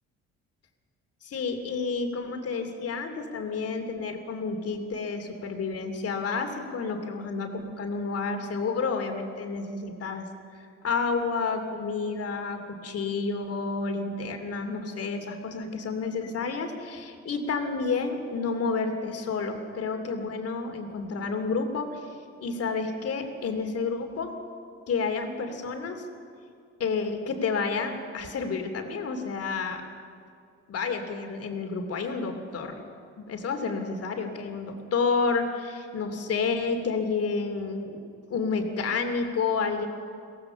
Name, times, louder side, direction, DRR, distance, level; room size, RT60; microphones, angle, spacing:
voice 1, 1.2-10.3 10.8-22.1 22.4-24.3 24.9-26.0 26.8-29.8 30.7-32.8 33.2-38.0 38.3-39.9, left 4 dB, 55° left, 5 dB, 2.9 m, -30 dB
23.5 x 17.5 x 7.0 m, 2.3 s
cardioid pair, 90°, 29 cm